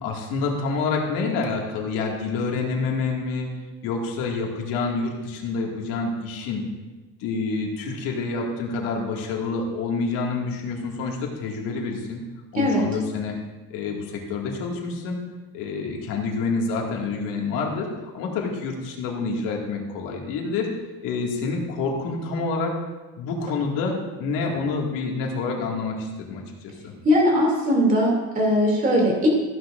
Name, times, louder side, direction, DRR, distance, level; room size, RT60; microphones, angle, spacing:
voice 1, 0.0-3.5 3.8-6.6 7.2-12.2 12.5-13.4 13.7-15.2 15.5-20.7 21.0-22.8 23.2-26.9, left 4 dB, 85° left, 0 dB, 2.1 m, -28 dB
voice 2, 27.0-29.3, equal, 25° right, -1 dB, 2.7 m, -20 dB
15.0 x 10.0 x 2.6 m, 1.2 s
cardioid pair, 170°, 33 cm